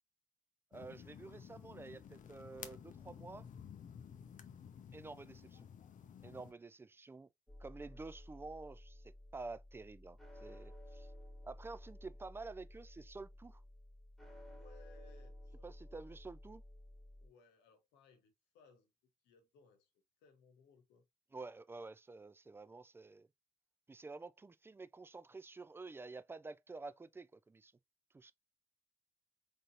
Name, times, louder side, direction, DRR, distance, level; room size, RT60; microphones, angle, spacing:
sound 1, 0.7-6.5, left 8 dB, 45° left, 0.6 m, -53 dB
voice 1, 0.7-3.5 4.9-5.7 6.2-7.3 7.6-11.1 11.4-13.6 15.6-16.6 21.3-23.3 23.9-27.7 28.1-28.3, right 3 dB, 10° right, 0.3 m, -50 dB
sound 2, 7.5-17.3, left 1 dB, 5° left, 1.4 m, -54 dB
voice 2, 14.4-16.0 17.2-18.9 19.2-19.9 20.2-21.0, left 5 dB, 65° left, 1.0 m, -66 dB
3.9 x 3.4 x 2.7 m
figure-of-eight pair, 40°, 19 cm